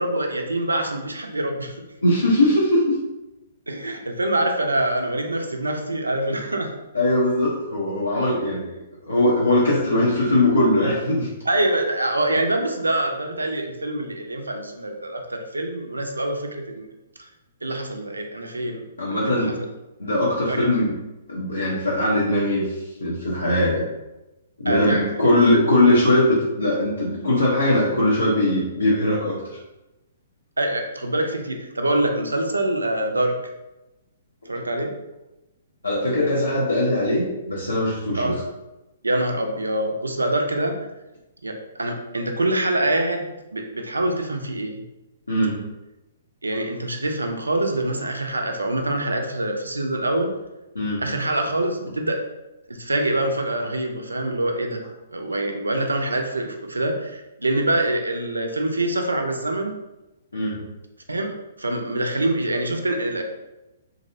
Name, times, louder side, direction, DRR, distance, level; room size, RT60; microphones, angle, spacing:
voice 1, 0.0-1.8 3.7-6.7 11.5-16.9 17.6-18.8 19.2-19.7 20.5-20.6 24.7-25.0 30.6-33.4 34.5-34.9 38.1-38.4 39.0-40.8 41.4-44.8 46.4-50.3 51.0-52.2 52.7-54.8 55.1-59.7 61.1-61.3 61.6-63.2, right 1 dB, 85° right, 3 dB, 0.4 m, -25 dB
voice 2, 2.0-2.8 6.9-8.7 9.0-11.3 19.0-19.5 20.0-20.9 21.3-22.6 23.0-23.8 24.6-29.4 35.8-38.3 45.3-45.5 50.7-51.0 60.3-60.6, left 1 dB, 85° left, -6 dB, 0.6 m, -20 dB
2.5 x 2.0 x 2.5 m, 1.0 s
figure-of-eight pair, 120°, 0 cm